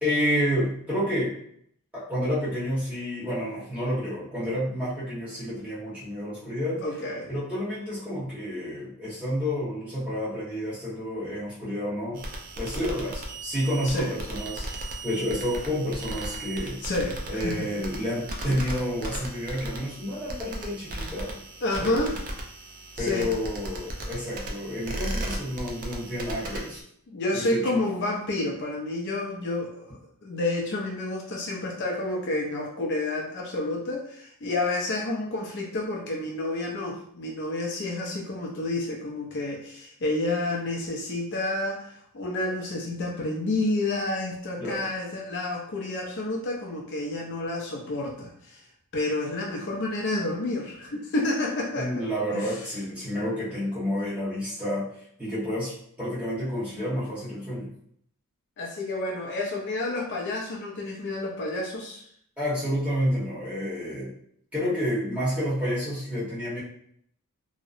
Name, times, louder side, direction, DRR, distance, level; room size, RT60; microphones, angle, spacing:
voice 1, 0.0-1.3 1.9-6.8 7.2-12.2 12.6-16.8 17.3-21.4 21.8-22.0 23.0-26.8 27.3-27.7 44.6-44.8 51.8-54.9 55.2-57.7 62.4-64.1 64.5-66.6, equal, 5° right, -10 dB, 1.1 m, -29 dB
voice 2, 6.8-7.3 13.8-14.1 16.8-17.7 21.6-22.2 23.0-23.3 27.1-48.6 48.9-52.0 52.3-52.6 58.6-62.0, left 2 dB, 50° left, -1 dB, 0.4 m, -30 dB
sound 1, 12.2-26.8, right 1 dB, 40° right, 0.4 m, -36 dB
2.7 x 2.1 x 2.4 m, 0.67 s
head